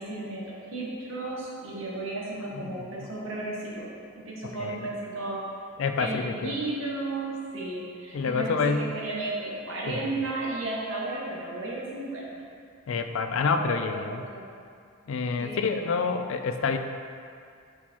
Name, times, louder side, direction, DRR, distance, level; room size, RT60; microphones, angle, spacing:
voice 1, 0.0-5.5 6.0-12.4 13.5-14.4 15.4-15.7 16.0-16.3, right 2 dB, 70° right, -4 dB, 1.2 m, -34 dB
voice 2, 5.8-6.5 8.1-8.8 9.9-10.1 12.9-14.2 15.1-16.8, left 5 dB, 70° left, 7 dB, 0.4 m, -27 dB
6.3 x 5.7 x 3.0 m, 2.3 s
head